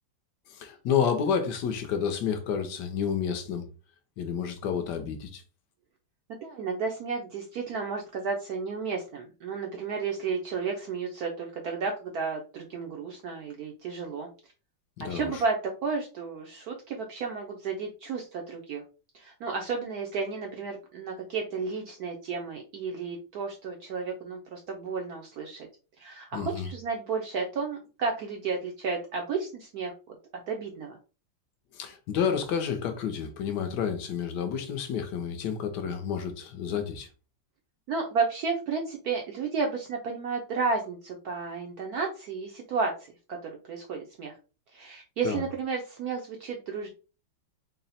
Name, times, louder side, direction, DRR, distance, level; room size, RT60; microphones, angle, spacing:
voice 1, 0.5-3.7 4.2-5.4 15.0-15.4 26.3-26.7 31.7-37.1 45.2-45.4, left 7 dB, 70° left, 1.1 m, -30 dB
voice 2, 6.4-14.3 15.0-18.8 19.1-25.7 26.0-30.2 30.5-31.0 37.9-42.9 43.3-43.4 43.7-44.3 44.7-46.9, right 4 dB, 75° right, 0.9 m, -32 dB
4.0 x 2.0 x 4.0 m
omnidirectional pair, 2.2 m